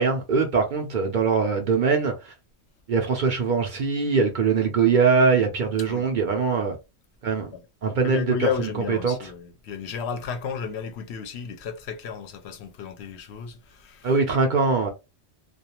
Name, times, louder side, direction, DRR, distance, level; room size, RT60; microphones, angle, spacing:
voice 1, 0.0-2.3 2.9-6.8 7.2-7.5 7.8-9.3 14.0-14.9, right 5 dB, 55° right, 0.6 m, -22 dB
voice 2, 8.0-14.2, left 7 dB, 70° left, 0.8 m, -33 dB
2.4 x 2.3 x 2.9 m
omnidirectional pair, 1.2 m